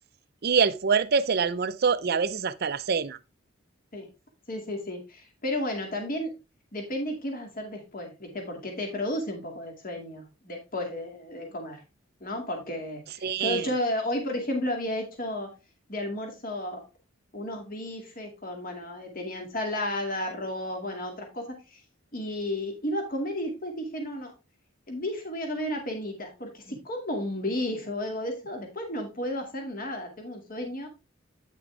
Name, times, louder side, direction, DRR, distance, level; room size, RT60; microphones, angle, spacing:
voice 1, 0.4-3.2 13.2-13.7, right 5 dB, 50° right, 0.6 m, -25 dB
voice 2, 4.5-6.3 6.7-11.8 12.2-15.5 15.9-16.8 17.3-21.8 22.1-24.3 24.9-30.9, left 1 dB, 45° left, 2.2 m, -33 dB
9.2 x 6.1 x 3.3 m
head